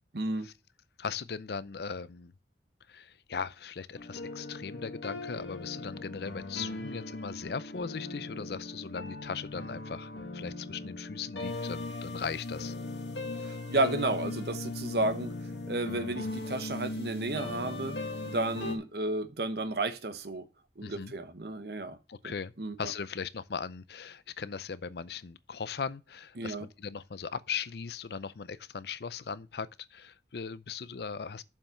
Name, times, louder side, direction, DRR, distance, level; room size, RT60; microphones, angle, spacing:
voice 1, 0.1-0.5 13.4-15.3 15.7-18.0 18.2-20.4 20.8-22.0 22.2-22.9 26.4-26.7, right 2 dB, 60° right, 1.1 m, -32 dB
voice 2, 1.0-2.3 2.9-12.7 20.8-21.1 22.1-22.5 22.8-31.4, left 6 dB, 60° left, 0.5 m, -38 dB
sound 1, 4.0-18.8, left 2 dB, 80° left, 1.8 m, -39 dB
7.3 x 5.6 x 7.1 m
head